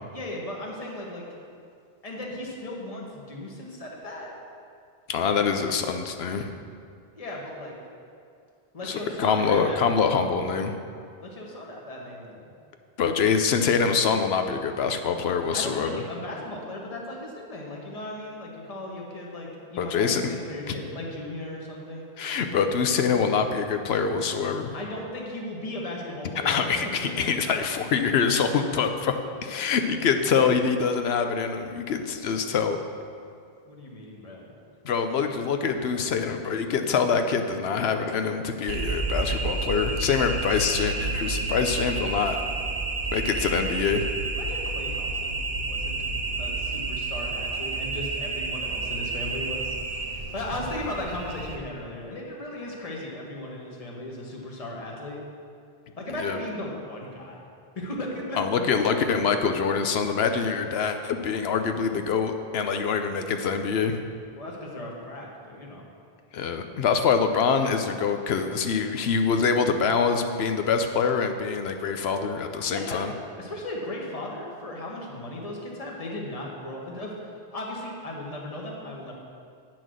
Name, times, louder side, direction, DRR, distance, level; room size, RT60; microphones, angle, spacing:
voice 1, 0.1-1.2 2.0-4.3 7.2-7.8 8.7-10.0 11.2-12.4 15.5-22.1 24.7-27.3 33.7-34.5 44.3-45.4 45.6-46.0 46.4-49.8 50.3-55.2 56.0-57.4 57.7-58.7 64.3-65.8 72.6-73.0 73.4-79.1, left 1 dB, 35° left, -2 dB, 1.4 m, -36 dB
voice 2, 5.1-6.5 8.8-10.7 13.0-16.0 19.8-20.2 22.2-24.7 26.4-29.1 29.4-32.8 34.8-42.4 43.1-44.1 56.2-56.4 58.4-64.0 66.3-73.1, left 6 dB, 80° left, 7 dB, 0.9 m, -25 dB
sound 1, 38.7-51.6, right 3 dB, 60° right, 1.1 m, -30 dB
9.0 x 6.1 x 6.3 m, 2.3 s
omnidirectional pair, 1.0 m